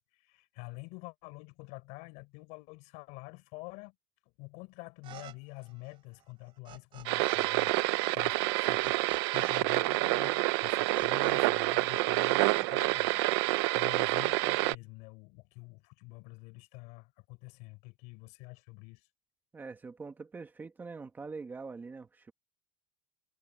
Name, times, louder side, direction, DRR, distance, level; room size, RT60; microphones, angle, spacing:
voice 1, 0.0-3.9 4.4-9.0 9.3-13.1 13.7-19.1, left 26 dB, 60° left, 4.4 m, -47 dB
sound 1, 5.0-5.3 5.6-7.5 7.7-11.8 12.0-13.2, right 13 dB, 35° right, 3.9 m, -51 dB
sound 2, 7.1-14.8, right 21 dB, 75° right, 0.8 m, -28 dB
voice 2, 19.5-22.3, right 4 dB, 15° right, 1.6 m, -44 dB
cardioid pair, 165°, 14 cm